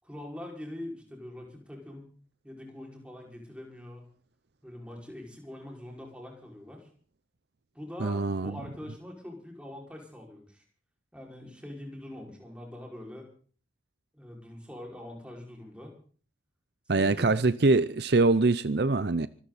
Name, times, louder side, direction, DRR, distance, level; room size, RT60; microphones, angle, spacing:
voice 1, 0.0-2.1 2.4-4.0 4.6-6.9 7.7-10.6 11.1-13.3 14.1-15.9 17.0-17.4, left 1 dB, 5° right, 5.6 m, -43 dB
voice 2, 8.0-8.6 16.9-19.3, right 3 dB, 60° right, 0.6 m, -24 dB
25.0 x 13.0 x 4.2 m
head